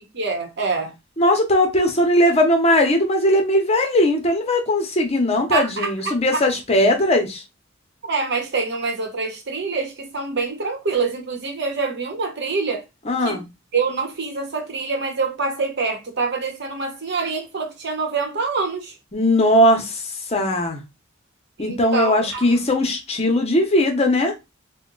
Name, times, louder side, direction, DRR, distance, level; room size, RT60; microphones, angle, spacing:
voice 1, 0.1-0.9 5.5-6.4 8.0-12.8 13.2-13.4 13.7-19.0 21.6-22.4, right 4 dB, 60° right, 0.9 m, -25 dB
voice 2, 1.2-7.4 13.1-13.4 19.1-20.8 21.6-24.3, left 1 dB, 30° left, 0.8 m, -19 dB
2.8 x 2.2 x 3.8 m
head